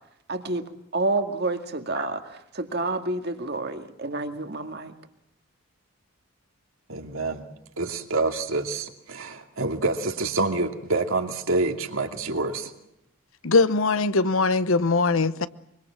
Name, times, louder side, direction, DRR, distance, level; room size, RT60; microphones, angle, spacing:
voice 1, 0.3-4.9, right 2 dB, 50° right, 2.0 m, -29 dB
voice 2, 6.9-7.5 7.8-12.7, right 3 dB, 70° right, 2.6 m, -27 dB
voice 3, 13.4-15.5, left 3 dB, 65° left, 0.9 m, -21 dB
24.5 x 24.0 x 7.5 m
head